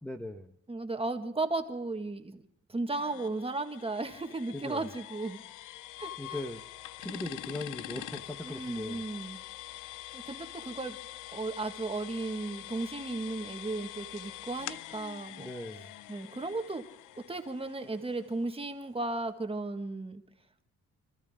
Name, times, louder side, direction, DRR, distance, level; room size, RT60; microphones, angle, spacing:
voice 1, 0.0-0.5 4.5-4.9 6.2-6.6 7.0-9.0 15.4-15.9, left 1 dB, 5° left, 2 dB, 1.1 m, -39 dB
voice 2, 0.7-2.4 2.7-5.4 6.0-6.4 8.4-9.4 10.1-11.0 11.3-15.5 16.1-16.8 17.1-20.2, right 2 dB, 20° right, 5 dB, 1.7 m, -35 dB
sound 1, 2.9-18.6, left 16 dB, 85° left, 0.6 m, -45 dB
26.0 x 13.5 x 3.7 m, 0.71 s
cardioid pair, 90°, 30 cm